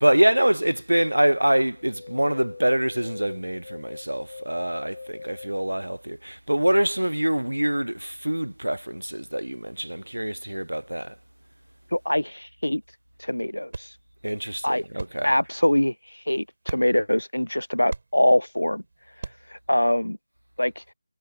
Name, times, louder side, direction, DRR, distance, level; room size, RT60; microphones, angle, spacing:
voice 1, 0.0-11.1 14.2-15.3, right 1 dB, 85° right, 0.6 m, -24 dB
sound 1, 1.8-5.5, left 4 dB, 45° left, 0.7 m, -42 dB
voice 2, 11.9-12.8 13.2-13.9 14.6-14.8 15.2-15.9 16.3-18.8 19.7-20.2 20.6-20.8, left 1 dB, 90° left, 0.7 m, -23 dB
sound 2, 12.9-19.6, right 3 dB, 45° right, 6.2 m, -42 dB
figure-of-eight pair, 165°, 0 cm